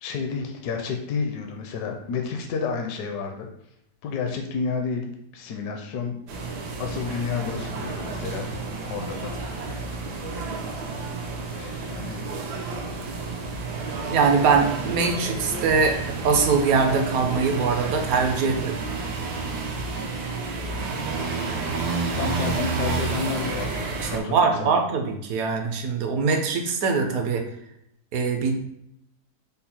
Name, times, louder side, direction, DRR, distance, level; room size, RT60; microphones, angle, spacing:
voice 1, 0.0-3.5 4.0-6.2 6.4-6.5 6.8-8.5 8.9-9.8 11.5-12.4 22.2-24.7, left 5 dB, 75° left, 3 dB, 1.1 m, -31 dB
sound 1, 6.3-24.2, right 4 dB, 85° right, 1.4 m, -30 dB
voice 2, 14.1-16.0 16.2-18.8 24.0-27.4 28.1-28.5, right 5 dB, 65° right, 5 dB, 1.0 m, -22 dB
5.4 x 2.0 x 4.2 m, 0.77 s
omnidirectional pair, 1.8 m